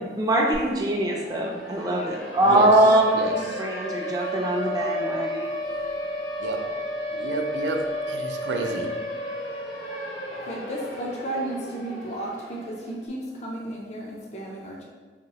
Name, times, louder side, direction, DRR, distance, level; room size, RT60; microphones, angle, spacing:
voice 1, 0.2-5.5, right 1 dB, 20° right, -2 dB, 0.3 m, -22 dB
Siren, 0.5-0.6 0.9-13.0, equal, 90° left, 0.9 m, -33 dB
voice 2, 3.1-3.6 6.4-6.6 7.1-8.9, right 3 dB, 85° right, 4 dB, 0.4 m, -30 dB
voice 3, 10.3-14.8, right 1 dB, 40° left, -2 dB, 0.4 m, -33 dB
3.7 x 2.8 x 2.9 m, 1.4 s
head